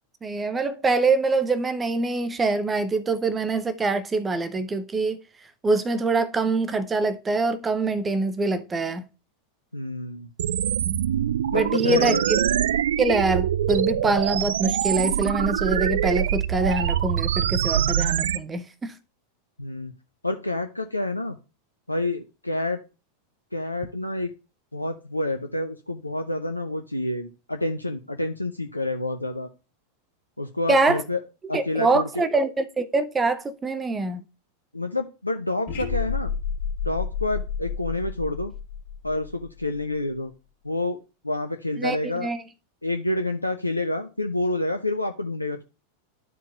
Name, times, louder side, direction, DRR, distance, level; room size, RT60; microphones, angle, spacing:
voice 1, 0.2-5.2 5.6-9.0 10.9-11.0 11.5-12.2 13.0-18.9 30.7-31.0 31.5-34.2 41.8-42.0 42.2-42.4, right 3 dB, 15° right, 0.6 m, -24 dB
voice 2, 9.7-10.3 11.4-12.3 19.6-19.9 20.2-21.4 21.9-22.8 23.5-24.3 24.7-29.5 30.4-31.2 31.5-32.2 34.7-36.3 36.8-38.5 39.0-40.3 40.6-41.0 41.2-42.3 42.8-45.6, left 2 dB, 85° left, 0.6 m, -28 dB
sound 1, 10.4-18.4, right 10 dB, 60° right, 0.3 m, -24 dB
sound 2, 35.7-39.8, left 7 dB, 45° left, 1.4 m, -30 dB
12.0 x 4.6 x 2.4 m
figure-of-eight pair, 90°, 0 cm